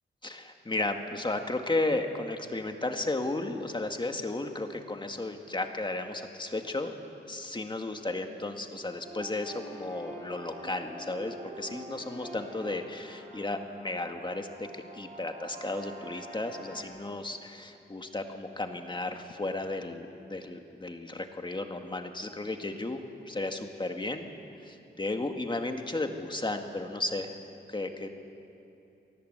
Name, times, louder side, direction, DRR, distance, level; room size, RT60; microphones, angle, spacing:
voice 1, 0.2-6.9 7.2-24.3 24.6-27.3 27.7-28.1, left 2 dB, 25° left, 5 dB, 1.9 m, -34 dB
sound 1, 9.0-16.8, right 1 dB, 35° right, 7.3 m, -46 dB
27.5 x 19.0 x 8.1 m, 2.8 s
wide cardioid pair, 105°, 19 cm